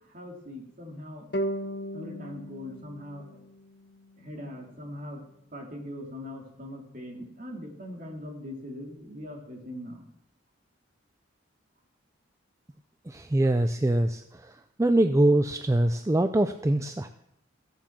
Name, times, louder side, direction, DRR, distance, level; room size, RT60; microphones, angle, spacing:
voice 1, 0.1-1.3 1.9-3.2 4.2-5.2 5.5-10.0, left 1 dB, 45° right, 0 dB, 2.8 m, -41 dB
sound 1, 1.3-4.6, equal, 55° left, 1.0 m, -36 dB
voice 2, 13.1-14.5 14.8-17.1, right 1 dB, 15° right, 8 dB, 0.4 m, -23 dB
15.0 x 7.4 x 7.2 m, 0.78 s
head